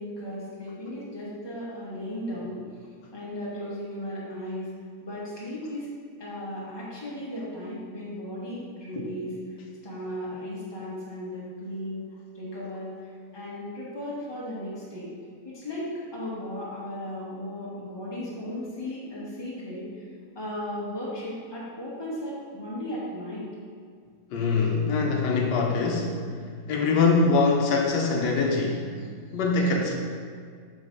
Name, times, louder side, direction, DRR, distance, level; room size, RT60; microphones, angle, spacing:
voice 1, 0.0-2.7 3.1-4.7 5.0-5.9 6.2-9.4 9.8-12.0 12.3-12.9 13.3-15.1 15.4-19.9 20.3-23.5, left 1 dB, 15° left, -8 dB, 1.4 m, -35 dB
voice 2, 24.3-26.1 26.7-28.8 29.3-29.9, left 4 dB, 80° left, 0 dB, 1.3 m, -23 dB
5.1 x 4.0 x 5.2 m, 2.1 s
omnidirectional pair, 1.8 m